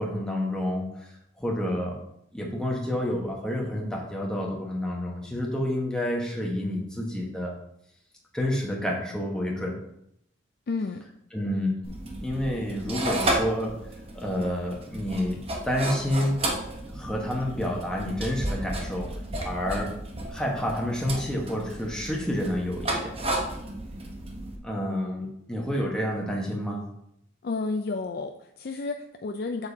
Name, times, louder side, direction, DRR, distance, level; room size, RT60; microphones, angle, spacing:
voice 1, 0.0-2.0 2.3-7.5 8.3-9.8 11.3-11.7 12.2-13.7 14.1-15.4 15.6-16.5 16.9-19.1 19.4-19.9 20.3-23.2 24.6-26.9, left 1 dB, 5° left, -2 dB, 1.2 m, -29 dB
voice 2, 10.7-11.0 27.4-29.7, left 3 dB, 50° left, 4 dB, 0.4 m, -31 dB
sound 1, 11.8-24.6, right 1 dB, 30° right, 0.9 m, -33 dB
7.5 x 7.1 x 2.7 m, 0.75 s
head